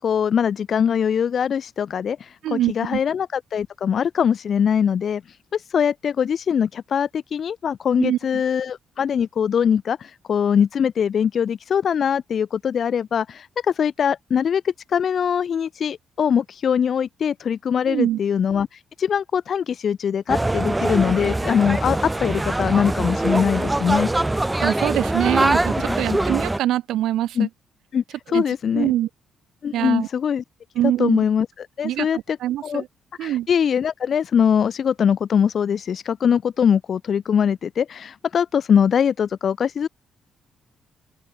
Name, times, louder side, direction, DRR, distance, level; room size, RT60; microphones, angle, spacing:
voice 1, 0.0-24.1 26.1-26.2 27.4-27.5 27.9-28.9 29.6-30.4 31.0-32.4 32.6-32.8 33.2-39.9, left 7 dB, 55° left, 0.6 m, -22 dB
voice 2, 2.4-3.0 8.0-8.4 17.9-18.2 24.6-27.5 28.3-28.4 28.7-29.1 29.7-30.1 30.7-31.2 31.8-32.9 33.2-33.5, right 13 dB, 80° right, 4.3 m, -24 dB
sound 1, 20.3-26.6, right 2 dB, 15° right, 3.7 m, -23 dB
open air
cardioid pair, 90°, 0 cm